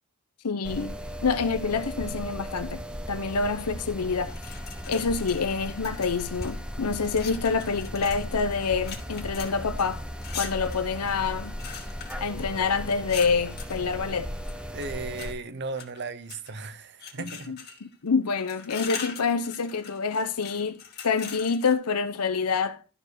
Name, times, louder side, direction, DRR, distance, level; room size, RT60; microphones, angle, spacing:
voice 1, 0.4-0.9 1.2-2.8 3.1-4.5 4.9-10.0 10.3-11.6 12.2-14.3 17.5-22.8, left 5 dB, 90° left, 0.8 m, -27 dB
sound 1, 0.6-15.3, equal, 5° right, 0.8 m, -37 dB
sound 2, 4.2-6.6 7.0-13.8 14.4-15.3 15.7-16.6 17.0-17.9 18.3-21.7, left 7 dB, 45° left, 2.3 m, -42 dB
voice 2, 14.7-17.6, right 3 dB, 50° right, 0.8 m, -36 dB
12.5 x 4.5 x 6.5 m
head